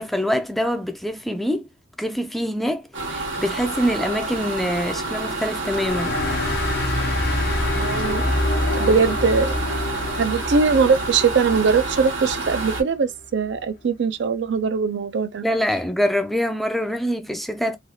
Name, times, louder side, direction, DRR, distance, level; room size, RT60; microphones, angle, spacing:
voice 1, 0.0-1.7 2.0-6.2 15.4-17.8, equal, ahead, 0.3 m, -24 dB
sound 1, 2.9-12.8, right 2 dB, 85° right, 1.2 m, -29 dB
sound 2, 5.7-12.8, left 2 dB, 55° left, 0.5 m, -26 dB
voice 2, 7.8-8.2 8.7-9.5 10.2-15.4, right 5 dB, 65° right, 0.4 m, -21 dB
3.2 x 2.3 x 2.6 m
head